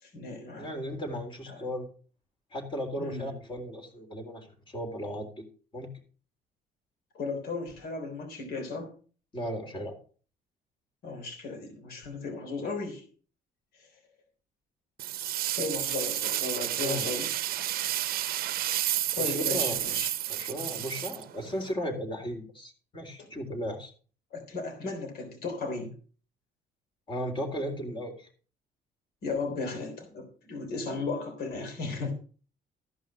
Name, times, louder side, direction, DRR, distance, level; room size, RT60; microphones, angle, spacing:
voice 1, 0.0-0.7 1.5-1.7 3.0-3.3 7.1-8.9 11.0-13.0 13.8-13.9 15.5-17.8 19.1-20.1 23.2-23.3 24.3-25.9 29.2-32.1, left 4 dB, 65° left, 4 dB, 3.5 m, -35 dB
voice 2, 0.6-1.9 2.5-5.4 5.7-5.9 9.3-10.0 16.8-17.1 19.2-19.8 20.3-23.9 27.1-28.3, equal, 30° left, 5 dB, 3.6 m, -35 dB
sound 1, 15.0-21.7, right 13 dB, 60° right, 0.7 m, -31 dB
14.5 x 5.5 x 6.3 m, 0.41 s
cardioid pair, 110°, 17 cm